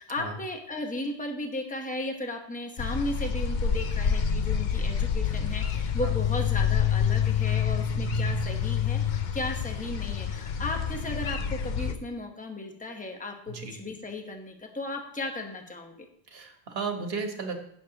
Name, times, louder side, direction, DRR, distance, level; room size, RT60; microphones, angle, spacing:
voice 1, 0.0-15.9, left 2 dB, 10° left, 3 dB, 1.1 m, -35 dB
sound 1, 2.8-11.9, left 7 dB, 50° left, 0.7 m, -27 dB
voice 2, 16.3-17.7, right 4 dB, 65° right, 4 dB, 1.6 m, -34 dB
16.0 x 6.8 x 2.9 m, 0.73 s
omnidirectional pair, 1.1 m